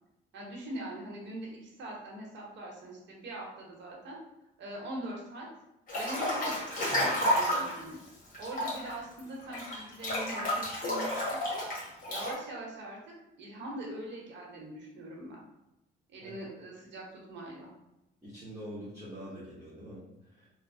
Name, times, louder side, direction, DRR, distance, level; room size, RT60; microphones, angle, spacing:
voice 1, 0.3-4.2 4.6-5.5 5.9-8.0 8.4-11.1 11.5-11.6 12.1-13.0 13.4-15.4 16.1-17.7, right 1 dB, 65° right, -2 dB, 0.9 m, -42 dB
Breathing / Bathtub (filling or washing) / Splash splatter, 5.9-7.8 8.3-12.3, left 1 dB, 45° left, 1.3 m, -31 dB
voice 2, 18.2-20.5, equal, 15° right, -10 dB, 1.0 m, -45 dB
3.1 x 2.1 x 2.6 m, 0.90 s
cardioid pair, 90°, 20 cm